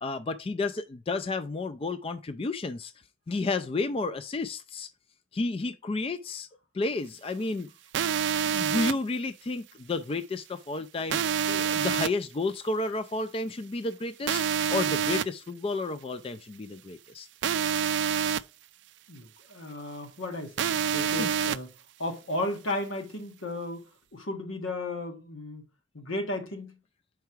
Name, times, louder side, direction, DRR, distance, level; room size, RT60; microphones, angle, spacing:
voice 1, 0.0-2.9 3.3-4.9 5.3-6.5 6.7-7.7 8.4-14.4 14.7-17.3 21.1-21.3, left 3 dB, 30° left, 0.3 m, -31 dB
sound 1, 7.9-8.9 11.1-12.1 14.3-15.2 17.4-18.4 20.6-21.6, right 8 dB, 60° right, 0.3 m, -27 dB
voice 2, 19.1-21.7 22.0-25.6 25.9-26.8, left 1 dB, 80° left, 1.5 m, -34 dB
5.8 x 4.6 x 4.5 m
head